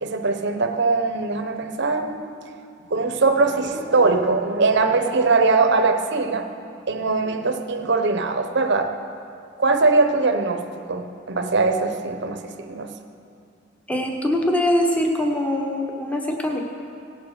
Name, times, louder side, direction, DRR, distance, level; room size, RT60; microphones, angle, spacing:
voice 1, 0.0-2.3 2.9-6.5 6.9-8.9 9.6-10.6 10.9-12.9, right 3 dB, 60° right, 6 dB, 0.9 m, -21 dB
voice 2, 13.9-16.6, left 1 dB, 5° left, 1 dB, 1.0 m, -22 dB
17.5 x 7.5 x 6.5 m, 2.5 s
head